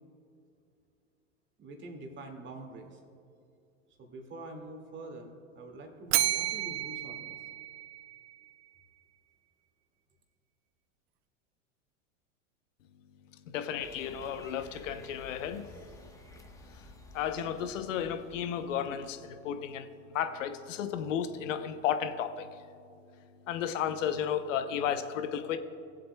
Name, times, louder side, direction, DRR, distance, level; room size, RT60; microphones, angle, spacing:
voice 1, 1.6-3.0 4.0-7.4, right 2 dB, 30° right, 2 dB, 2.1 m, -45 dB
Bell, 6.1-8.3, right 16 dB, 55° right, 0.5 m, -31 dB
voice 2, 13.5-15.6 17.1-22.5 23.5-25.6, left 8 dB, 75° left, 10 dB, 0.8 m, -33 dB
sound 1, 13.8-19.3, left 2 dB, 10° left, 1.0 m, -53 dB
19.0 x 7.7 x 2.2 m, 2.5 s
hypercardioid pair, 100°, 38 cm